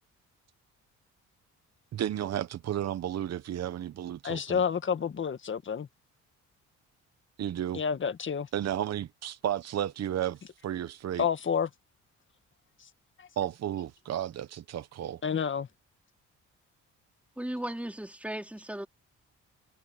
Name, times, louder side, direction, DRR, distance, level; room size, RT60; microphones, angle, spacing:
voice 1, 1.9-4.6 7.4-7.8 8.5-10.4 10.6-11.2 13.4-15.2, right 11 dB, 60° right, 1.1 m, -33 dB
voice 2, 4.2-5.9 7.7-8.5 11.2-11.7 13.2-13.3 15.2-15.7, left 7 dB, 40° left, 1.7 m, -29 dB
voice 3, 17.4-18.9, right 1 dB, 5° right, 4.5 m, -36 dB
cardioid pair, 90°, 30 cm